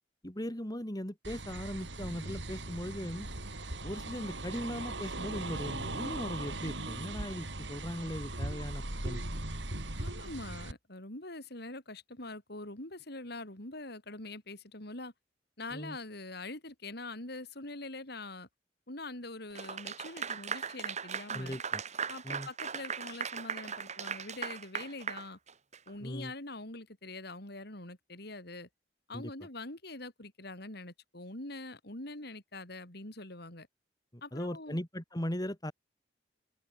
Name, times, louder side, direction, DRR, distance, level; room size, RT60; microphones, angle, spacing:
voice 1, 0.2-3.3 3.8-9.2 15.7-16.0 21.3-21.8 22.2-22.5 26.0-26.3 29.1-29.3 34.3-35.7, equal, 20° left, 3.3 m, -38 dB
sound 1, 1.2-10.7, right 2 dB, 80° right, 4.9 m, -39 dB
voice 2, 10.0-15.1 15.6-18.5 18.9-21.6 22.1-25.4 25.9-28.7 29.1-33.7 34.2-34.8, left 2 dB, 65° left, 5.6 m, -44 dB
Clapping / Applause, 19.6-25.9, right 6 dB, 40° right, 3.5 m, -38 dB
open air
head